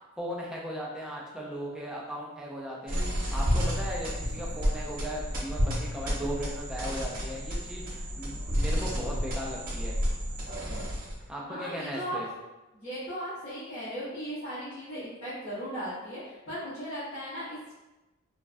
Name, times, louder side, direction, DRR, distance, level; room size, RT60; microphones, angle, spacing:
voice 1, 0.2-3.1 3.3-10.0 11.3-12.3, equal, 5° right, -4 dB, 0.4 m, -37 dB
sound 1, 2.9-11.3, equal, 40° right, 0.7 m, -31 dB
voice 2, 11.4-12.2 12.7-17.7, equal, 80° left, -15 dB, 1.4 m, -37 dB
3.2 x 2.2 x 2.4 m, 1.1 s
head